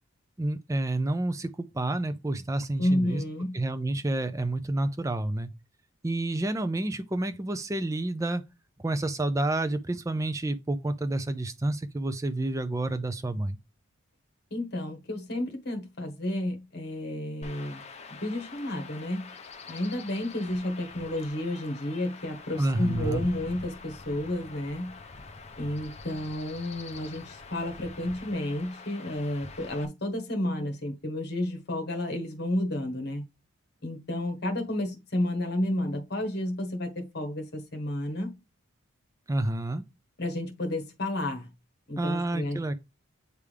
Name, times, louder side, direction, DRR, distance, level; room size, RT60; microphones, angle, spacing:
voice 1, 0.4-1.5 1.7-3.2 3.5-5.5 6.0-8.4 8.8-13.6 22.6-23.2 39.3-39.8 42.0-42.7, right 2 dB, 15° right, 0.4 m, -29 dB
voice 2, 2.8-3.6 14.5-17.8 18.1-19.3 19.7-24.9 25.6-33.2 33.8-38.3 40.2-41.5 41.9-42.6, left 1 dB, 50° left, 1.3 m, -31 dB
Chirp tweet / Wind / Stream, 17.4-29.8, left 3 dB, 30° left, 0.6 m, -44 dB
8.2 x 3.5 x 3.3 m
head